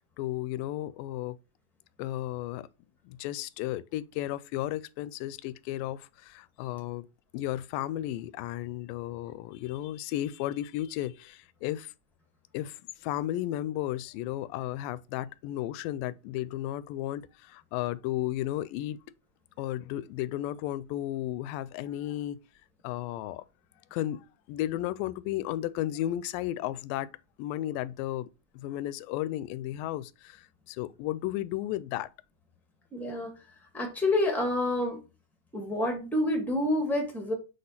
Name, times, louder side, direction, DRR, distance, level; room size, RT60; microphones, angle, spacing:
voice 1, 0.2-1.4 2.0-2.7 3.1-7.1 7.3-11.9 12.5-19.0 19.6-22.4 22.8-23.4 23.9-27.1 27.4-32.1, left 14 dB, 85° left, 2.2 m, -34 dB
voice 2, 32.9-33.3 33.7-35.0 35.5-37.3, left 1 dB, ahead, 0.4 m, -28 dB
7.7 x 3.3 x 5.7 m
omnidirectional pair, 4.0 m